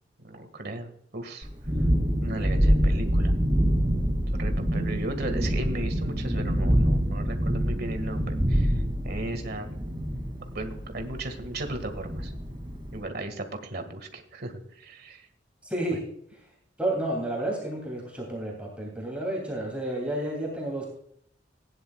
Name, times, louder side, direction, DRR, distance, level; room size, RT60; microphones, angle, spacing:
voice 1, 0.2-1.5 2.2-3.3 4.4-8.7 9.0-9.9 10.5-12.3 12.9-15.3, right 2 dB, 60° right, 7 dB, 1.8 m, -36 dB
Thunderstorm, 1.4-13.0, equal, 25° right, 2.6 m, -26 dB
voice 2, 15.6-16.1 16.8-20.9, right 1 dB, 5° right, -2 dB, 2.8 m, -31 dB
17.0 x 10.0 x 2.3 m, 0.67 s
head